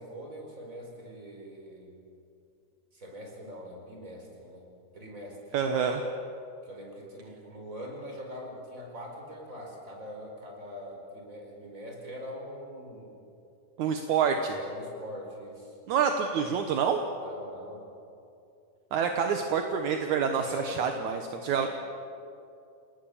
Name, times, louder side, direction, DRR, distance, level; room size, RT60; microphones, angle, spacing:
voice 1, 0.0-2.0 2.9-4.7 4.9-5.4 6.6-13.2 14.5-15.8 17.2-17.8 19.1-19.3 20.4-20.8 21.5-21.7, equal, 25° right, 0 dB, 5.1 m, -43 dB
voice 2, 5.5-6.0 13.8-14.6 15.9-17.0 18.9-21.7, right 6 dB, 70° right, 5 dB, 2.4 m, -27 dB
29.5 x 18.5 x 7.2 m, 2.6 s
omnidirectional pair, 3.7 m